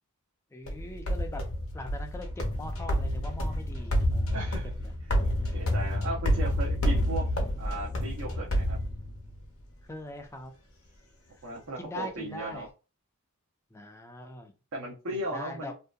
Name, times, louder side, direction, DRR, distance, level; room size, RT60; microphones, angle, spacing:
voice 1, 0.5-1.4 1.7-4.3 4.8-4.9 5.4-5.6 9.9-10.5 11.8-12.7 13.7-14.5 15.3-15.7, left 1 dB, 10° left, 4 dB, 0.3 m, -41 dB
sound 1, 0.7-9.4, equal, 65° left, 0.7 m, -29 dB
voice 2, 4.3-4.7 5.0-5.1 5.5-7.2 7.6-8.8 11.4-12.7 14.7-15.7, right 1 dB, 70° right, -5 dB, 0.6 m, -36 dB
2.6 x 2.1 x 2.3 m, 0.32 s
head